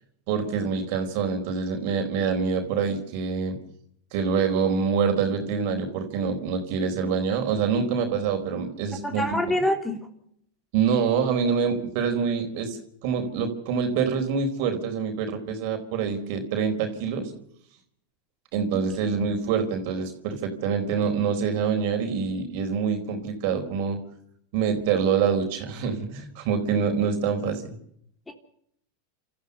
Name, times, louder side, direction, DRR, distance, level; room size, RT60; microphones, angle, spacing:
voice 1, 0.3-3.6 4.1-9.4 10.7-17.3 18.5-24.0 24.5-27.8, right 6 dB, 60° right, 5 dB, 4.2 m, -26 dB
voice 2, 9.0-10.0 18.7-18.9 28.3-28.4, left 1 dB, 10° left, 6 dB, 3.1 m, -26 dB
29.0 x 14.0 x 6.8 m, 0.70 s
hypercardioid pair, 105°, 0 cm